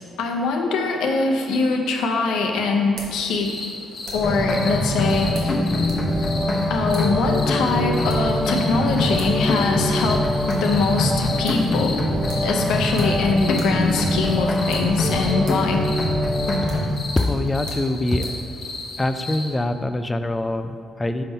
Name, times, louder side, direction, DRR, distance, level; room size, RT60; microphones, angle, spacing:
voice 1, 0.2-3.5 4.1-5.5 6.7-10.3 10.6-12.0 12.4-15.8, left 3 dB, 85° left, 2 dB, 0.7 m, -22 dB
sound 1, 1.5-4.4 5.3-6.1 6.3-6.4 6.9-7.1 7.9-8.4 8.9-9.0 9.2-9.4 9.7-9.8 10.1-10.7 11.1-11.2 11.4-11.7 12.3-13.2 13.5-13.8 14.1-14.2 14.6-18.4, right 2 dB, 80° right, 1.2 m, -42 dB
sound 2, 3.2-19.5, left 3 dB, 60° left, 1.1 m, -35 dB
sound 3, 4.1-16.9, left 1 dB, 35° left, 0.8 m, -23 dB
voice 2, 17.2-18.3 19.0-21.2, left 1 dB, 15° left, 9 dB, 0.4 m, -24 dB
5.6 x 3.6 x 5.4 m, 2.3 s
cardioid pair, 90°, 0 cm